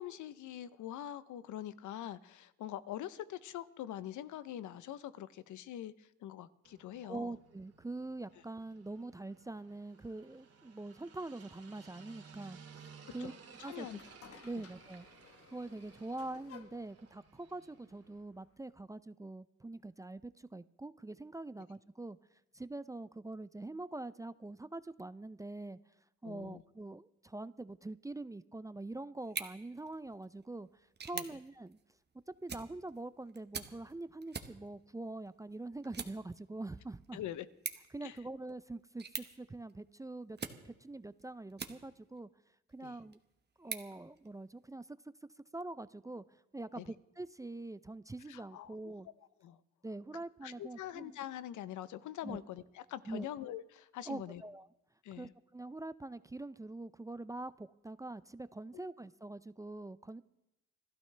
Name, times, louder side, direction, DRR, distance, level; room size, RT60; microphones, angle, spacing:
voice 1, 0.0-7.4 13.2-14.0 14.6-14.7 26.2-26.6 31.1-31.2 37.1-37.5 38.0-38.2 42.8-43.0 46.8-46.9 48.3-48.9 49.4-49.6 50.4-54.4 55.0-55.3 58.8-58.9, left 12 dB, 75° left, 15 dB, 0.8 m, -44 dB
sound 1, 6.6-18.2, right 5 dB, 55° right, 2.3 m, -58 dB
voice 2, 7.0-13.3 13.6-13.9 14.4-15.1 15.5-22.2 22.5-25.8 26.2-30.7 31.0-31.8 32.4-37.2 37.9-40.4 40.6-42.3 42.7-43.2 43.6-44.9 45.5-49.1 49.8-51.2 52.2-52.4 53.1-53.3 54.1-54.7 55.2-60.2, right 2 dB, 10° right, 15 dB, 0.4 m, -44 dB
sound 2, 13.5-18.7, left 7 dB, 50° left, 1.1 m, -59 dB
sound 3, 29.2-42.2 42.7-44.8, right 5 dB, 35° right, 1.3 m, -48 dB
28.5 x 12.5 x 3.3 m, 0.91 s
cardioid pair, 90°, 30 cm